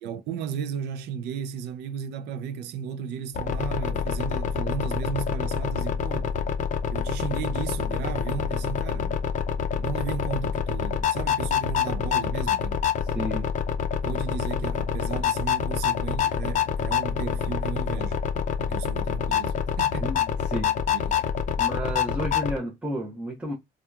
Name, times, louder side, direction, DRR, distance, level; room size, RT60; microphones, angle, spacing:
voice 1, 0.0-6.5 6.9-9.3 9.8-12.9 14.0-18.2 18.6-20.1 20.9-21.2, right 8 dB, 80° right, 0.4 m, -35 dB
sound 1, 3.3-22.6, left 8 dB, 45° left, 0.5 m, -27 dB
voice 2, 13.0-13.5 20.0-20.8 21.6-23.5, right 1 dB, 5° right, 0.8 m, -32 dB
2.7 x 2.3 x 2.3 m
cardioid pair, 110°, 17 cm